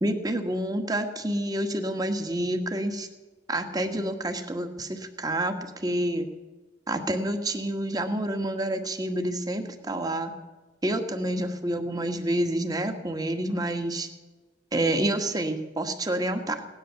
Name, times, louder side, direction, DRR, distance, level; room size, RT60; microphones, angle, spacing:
voice 1, 0.0-3.1 3.5-6.3 6.9-10.4 10.8-14.1 14.7-16.7, right 1 dB, 25° right, 6 dB, 1.6 m, -28 dB
17.5 x 11.0 x 7.0 m, 1.2 s
head